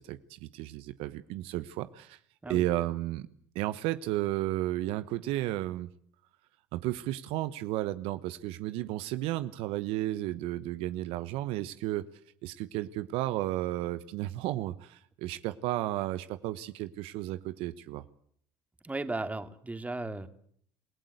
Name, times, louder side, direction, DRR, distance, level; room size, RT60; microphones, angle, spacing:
voice 1, 0.0-2.2 2.5-3.3 3.5-5.9 6.7-12.1 12.4-18.0, right 15 dB, 70° right, 13 dB, 1.2 m, -33 dB
voice 2, 18.8-20.3, right 2 dB, 15° right, 10 dB, 2.6 m, -35 dB
28.0 x 17.0 x 8.1 m, 0.63 s
hypercardioid pair, 75°, 10 cm